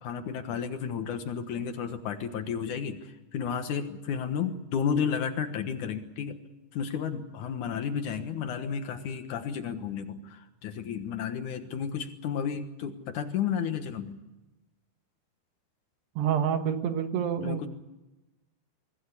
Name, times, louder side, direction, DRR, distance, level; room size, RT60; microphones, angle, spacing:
voice 1, 0.0-6.4 6.7-14.2 17.4-17.7, left 7 dB, 70° left, 7 dB, 1.9 m, -32 dB
voice 2, 16.2-17.7, right 8 dB, 70° right, 7 dB, 3.3 m, -28 dB
24.5 x 16.5 x 8.4 m, 1.0 s
omnidirectional pair, 5.5 m